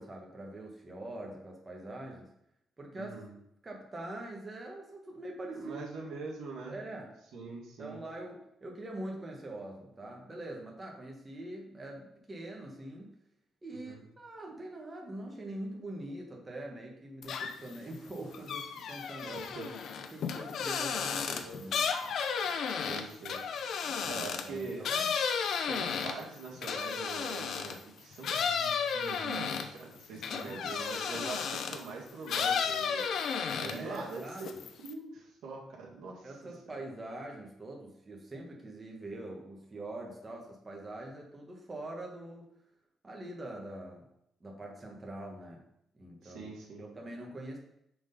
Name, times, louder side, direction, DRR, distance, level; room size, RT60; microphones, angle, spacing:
voice 1, 0.0-2.3 2.8-3.1 3.6-5.8 6.7-7.1 7.4-7.5 7.8-13.1 13.6-19.4 20.0-22.2 23.8-25.1 30.4-30.7 33.7-34.6 36.2-42.5 43.0-44.1 44.4-45.7 45.9-46.5 46.8-47.6, right 1 dB, 25° right, -1 dB, 1.3 m, -43 dB
voice 2, 2.9-3.3 5.5-6.8 7.3-8.0 13.7-14.0 19.5-19.7 22.7-23.4 24.1-24.8 25.7-34.5 34.8-36.3 46.2-46.9, right 4 dB, 80° right, -3 dB, 1.9 m, -43 dB
sound 1, 17.2-17.8 18.1-27.8 28.2-31.9 32.3-34.0 34.3-34.9, left 6 dB, 70° left, 0.6 m, -33 dB
6.2 x 3.8 x 5.3 m, 0.77 s
cardioid pair, 90°, 0 cm